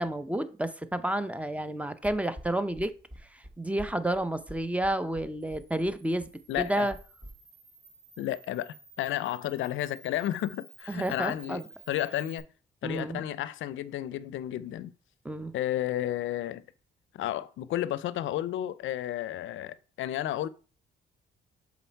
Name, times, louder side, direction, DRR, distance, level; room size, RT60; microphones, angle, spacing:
voice 1, 0.0-2.9 3.3-6.3 6.6-6.9 10.9-11.6 12.8-13.3 15.2-15.5, right 1 dB, 5° right, 0.7 m, -30 dB
sound 1, 2.0-7.3, equal, 20° right, 1.8 m, -46 dB
Camera, 5.4-12.4, right 4 dB, 45° right, 3.0 m, -54 dB
voice 2, 6.5-6.9 8.2-11.6 11.9-12.4 12.8-14.9 15.5-16.6 17.1-20.5, left 13 dB, 75° left, 0.5 m, -32 dB
6.9 x 4.2 x 4.5 m
cardioid pair, 90°, 20 cm